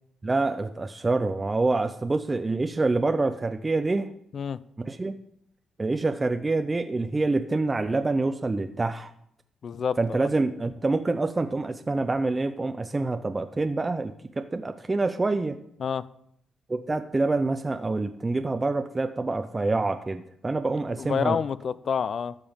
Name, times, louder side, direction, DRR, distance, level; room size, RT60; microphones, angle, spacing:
voice 1, 0.2-4.1 4.8-5.1 5.8-9.1 10.0-15.6 16.7-21.4, right 3 dB, 20° right, 8 dB, 0.5 m, -26 dB
voice 2, 9.6-10.0 15.8-16.0 21.0-22.3, left 7 dB, 50° left, 17 dB, 0.4 m, -28 dB
13.5 x 5.3 x 5.5 m, 0.74 s
cardioid pair, 90°, 0 cm